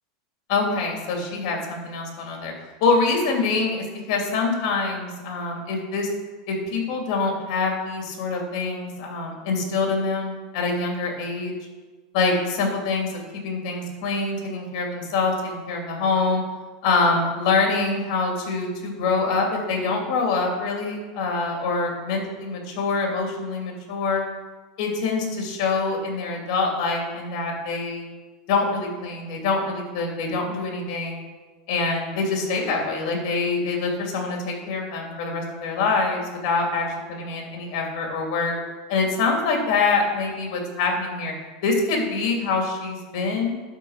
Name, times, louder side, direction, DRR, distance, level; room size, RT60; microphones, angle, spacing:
voice 1, 0.5-2.5 2.8-6.1 6.5-11.5 12.1-16.4 16.8-24.2 24.8-28.1 28.5-31.2 31.7-38.5 38.9-41.3 41.6-43.5, left 4 dB, 50° left, 1 dB, 2.8 m, -25 dB
11.5 x 4.6 x 6.5 m, 1.3 s
supercardioid pair, 155°, 3 cm